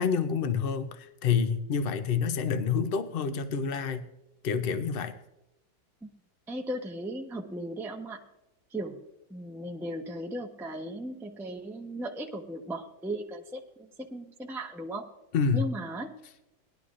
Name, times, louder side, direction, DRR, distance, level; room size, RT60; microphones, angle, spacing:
voice 1, 0.0-4.1 4.4-5.1 15.3-15.7, left 6 dB, 85° left, 8 dB, 0.5 m, -28 dB
voice 2, 6.5-8.2 8.7-9.0 9.3-15.1 15.5-16.1, right 1 dB, 5° right, 1 dB, 0.4 m, -37 dB
18.5 x 11.0 x 2.5 m, 0.91 s
omnidirectional pair, 1.9 m